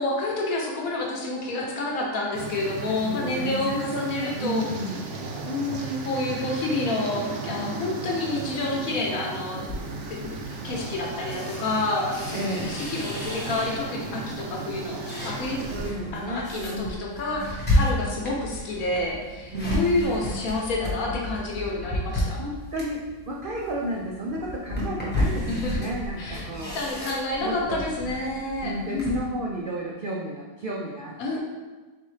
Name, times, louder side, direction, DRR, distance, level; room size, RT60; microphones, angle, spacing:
voice 1, 0.0-4.6 5.4-9.7 10.1-10.3 10.6-15.6 16.1-22.4 25.5-25.8 26.2-26.5 26.7-29.1 31.2-31.4, left 2 dB, 70° left, -1 dB, 1.2 m, -29 dB
sound 1, 2.3-15.9, right 3 dB, 65° right, 0.8 m, -36 dB
voice 2, 2.7-5.0 12.3-12.7 15.7-17.0 19.5-19.8 22.4-26.8 27.4-27.8 28.6-31.4, right 1 dB, 85° right, -2 dB, 0.4 m, -32 dB
sound 2, 9.6-14.1 14.5-29.3, left 1 dB, 10° left, 0.9 m, -32 dB
4.1 x 4.0 x 3.2 m, 1.3 s
omnidirectional pair, 1.6 m